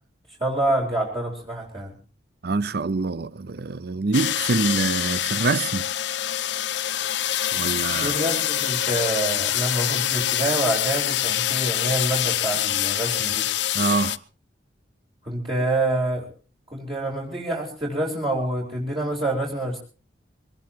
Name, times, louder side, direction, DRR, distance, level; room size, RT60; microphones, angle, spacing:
voice 1, 0.4-1.9 7.9-13.5 15.2-16.3 16.7-19.8, right 1 dB, 30° right, 3.9 m, -27 dB
voice 2, 2.4-5.9 7.5-8.2 13.7-14.2, right 3 dB, 60° right, 0.7 m, -25 dB
sound 1, 4.1-14.2, left 11 dB, 70° left, 0.8 m, -25 dB
23.0 x 19.0 x 2.8 m
head